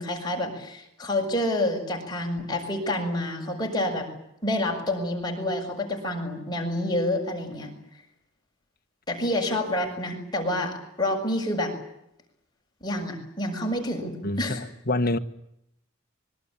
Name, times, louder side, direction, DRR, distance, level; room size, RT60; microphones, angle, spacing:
voice 1, 0.0-4.1 4.4-7.7 9.1-11.7 12.8-14.6, left 1 dB, 20° left, 6.7 m, -28 dB
voice 2, 14.2-15.2, left 2 dB, 45° left, 1.5 m, -26 dB
25.0 x 23.0 x 8.8 m
head